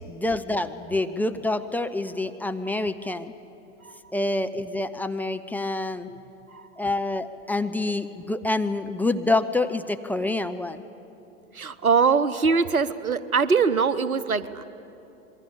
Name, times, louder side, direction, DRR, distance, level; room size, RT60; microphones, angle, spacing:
voice 1, 0.1-3.3 4.1-6.1 6.8-10.8, left 2 dB, 5° left, 7 dB, 0.6 m, -27 dB
voice 2, 3.8-4.2 6.1-6.2 6.5-6.7 11.5-14.6, right 5 dB, 90° right, 16 dB, 0.9 m, -23 dB
26.5 x 22.0 x 8.6 m, 2.9 s
figure-of-eight pair, 95°, 41 cm